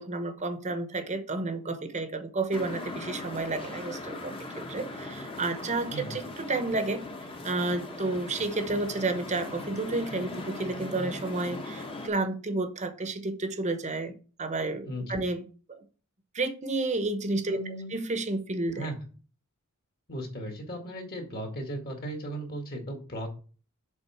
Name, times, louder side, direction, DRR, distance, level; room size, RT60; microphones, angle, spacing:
voice 1, 0.0-7.0 7.4-14.1 14.4-15.9 16.3-17.6 17.9-18.9, right 2 dB, 35° right, 1.0 m, -31 dB
sound 1, 2.5-12.1, left 2 dB, 25° left, 1.1 m, -39 dB
voice 2, 14.8-15.2 17.5-17.9 18.8-18.9 20.1-23.3, right 1 dB, 45° left, 2.0 m, -36 dB
7.0 x 4.0 x 5.7 m
head